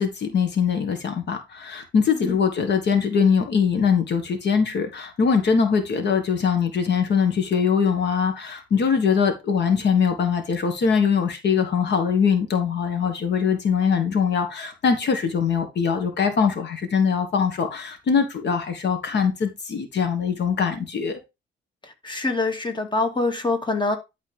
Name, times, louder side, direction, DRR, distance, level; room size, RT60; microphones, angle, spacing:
voice 1, 0.0-21.2, left 6 dB, 60° left, 1.6 m, -22 dB
voice 2, 21.8-24.0, left 3 dB, 25° left, 2.2 m, -25 dB
11.5 x 4.3 x 3.5 m
cardioid pair, 90°, 20 cm